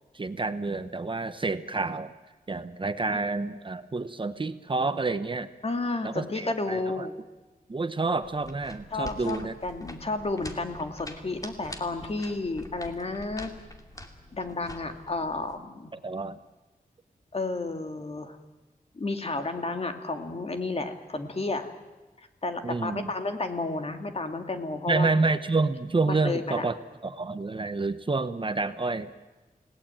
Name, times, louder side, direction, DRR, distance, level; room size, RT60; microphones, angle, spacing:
voice 1, 0.1-2.1 2.5-5.5 6.0-7.1 7.7-9.5 16.0-16.4 22.6-23.1 24.9-26.7 27.0-29.1, right 3 dB, 35° right, 11 dB, 1.0 m, -28 dB
voice 2, 5.6-7.2 8.9-13.5 14.3-15.9 17.3-18.4 18.9-21.7 22.4-25.1 26.1-26.7, left 3 dB, 45° left, 6 dB, 2.3 m, -32 dB
sound 1, 8.2-15.6, left 1 dB, 25° left, 2.6 m, -45 dB
29.5 x 18.0 x 8.9 m, 1.2 s
wide cardioid pair, 115°, 15 cm